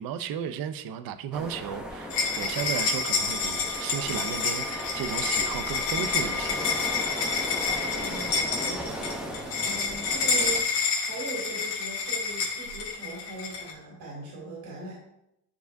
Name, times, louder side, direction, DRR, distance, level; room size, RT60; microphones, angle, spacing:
voice 1, 0.0-6.7, right 8 dB, 55° right, 11 dB, 0.6 m, -34 dB
sound 1, 1.3-10.6, equal, ahead, 0.7 m, -37 dB
sound 2, 2.1-13.7, left 5 dB, 85° left, 1.8 m, -29 dB
Wind instrument woodwind instrument, 2.5-7.1, right 1 dB, 20° right, 1.5 m, -44 dB
voice 2, 7.8-14.9, right 3 dB, 80° right, -4 dB, 2.6 m, -40 dB
9.4 x 4.8 x 2.6 m, 0.82 s
cardioid pair, 135°, 42 cm